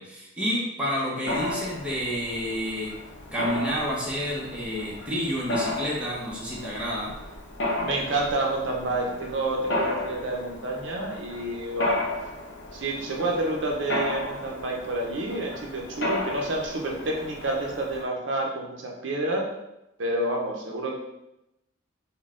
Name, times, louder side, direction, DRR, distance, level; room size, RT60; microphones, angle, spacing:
voice 1, 0.0-2.9 3.3-7.1, equal, 5° right, -6 dB, 0.9 m, -29 dB
Mechanisms, 1.3-18.0, left 1 dB, 65° left, 0.7 m, -34 dB
voice 2, 7.8-12.0 12.7-19.5 20.0-20.9, right 2 dB, 75° right, -1 dB, 0.6 m, -29 dB
4.0 x 2.2 x 3.6 m, 0.90 s
head